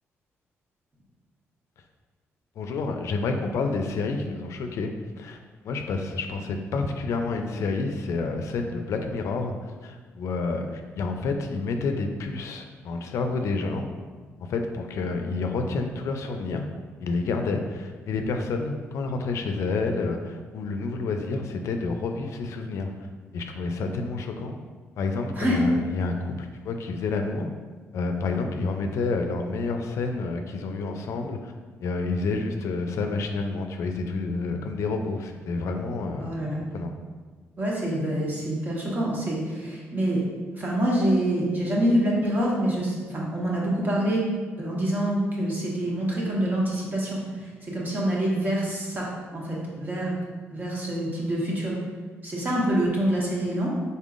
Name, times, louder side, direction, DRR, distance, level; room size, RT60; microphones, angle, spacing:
voice 1, 2.6-5.4 5.6-13.9 14.5-16.7 17.0-22.9 23.3-24.5 25.0-27.5 27.9-31.5 31.8-36.3 36.7-36.9, left 3 dB, 75° left, 5 dB, 0.4 m, -29 dB
voice 2, 36.2-36.6 37.6-40.2 40.5-44.2 44.6-50.1 50.5-51.8 52.2-53.7, right 1 dB, 35° right, -4 dB, 1.2 m, -26 dB
4.0 x 3.6 x 2.5 m, 1.4 s
cardioid pair, 85°, 5 cm